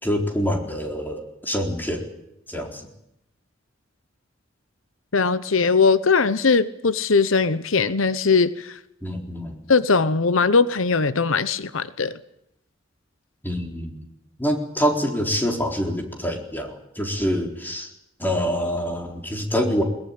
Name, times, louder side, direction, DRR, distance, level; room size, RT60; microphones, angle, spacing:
voice 1, 0.0-2.1 2.5-2.8 9.0-9.6 13.4-14.1 14.4-17.9 18.2-19.8, equal, 10° left, 4.1 m, -26 dB
voice 2, 5.1-8.8 9.7-12.2, left 4 dB, 90° left, 0.9 m, -20 dB
21.5 x 21.0 x 8.9 m
head